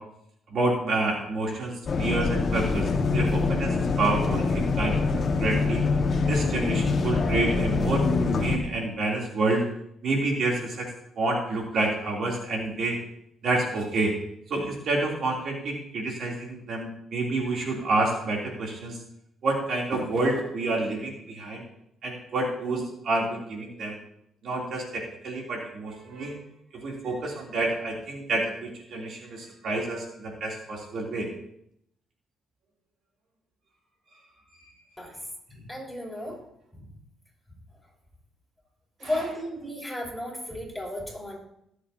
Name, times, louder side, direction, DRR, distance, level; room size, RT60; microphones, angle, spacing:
voice 1, 0.5-5.8 6.3-9.6 10.0-10.9 11.2-13.0 13.4-14.1 14.5-19.0 19.4-21.6 22.0-24.0 24.4-26.3 26.7-31.3 39.0-39.1, right 2 dB, 60° right, -2 dB, 3.0 m, -28 dB
sound 1, 1.9-8.6, left 4 dB, 45° left, 1.4 m, -25 dB
voice 2, 35.5-36.4 36.7-36.9 39.0-41.4, left 1 dB, 5° left, -2 dB, 5.6 m, -34 dB
21.0 x 8.1 x 2.8 m, 0.75 s
cardioid pair, 90°, 0 cm